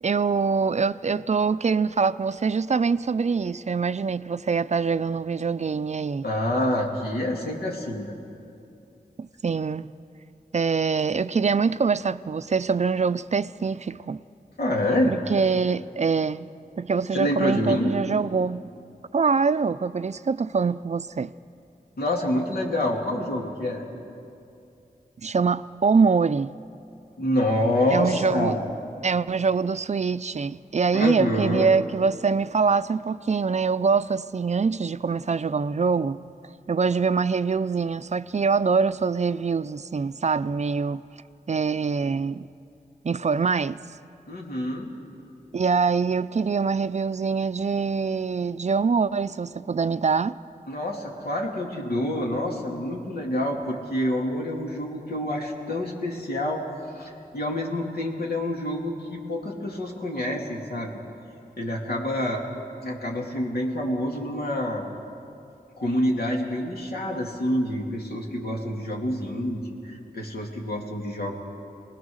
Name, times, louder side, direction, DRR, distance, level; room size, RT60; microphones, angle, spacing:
voice 1, 0.0-6.3 9.2-9.9 10.5-14.2 15.1-16.5 16.8-18.6 19.1-21.3 25.2-26.5 27.9-28.6 29.0-36.2 36.7-41.0 41.5-42.5 43.0-43.8 45.5-50.4, right 5 dB, 50° right, 0.4 m, -24 dB
voice 2, 6.2-8.1 14.6-15.1 17.1-17.9 22.0-23.8 27.2-28.7 30.9-31.7 44.3-44.9 50.7-56.6 56.9-61.0 61.6-62.4 62.8-64.8 65.8-71.4, left 1 dB, 80° left, 2.9 m, -27 dB
25.0 x 19.5 x 6.4 m
wide cardioid pair, 85°, 16 cm